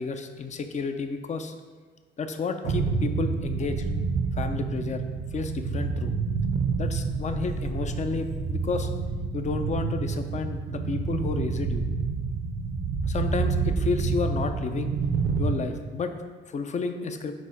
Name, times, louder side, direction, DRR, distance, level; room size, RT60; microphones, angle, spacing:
voice 1, 0.0-1.5 2.2-3.9 4.3-5.0 5.3-6.2 6.8-8.9 9.3-11.9 13.0-14.9 15.4-16.1 16.5-17.3, left 4 dB, 35° left, 7 dB, 0.6 m, -31 dB
sound 1, 2.6-15.6, right 5 dB, 80° right, 0.7 m, -28 dB
5.4 x 3.8 x 4.8 m, 1.4 s
cardioid pair, 90°, 20 cm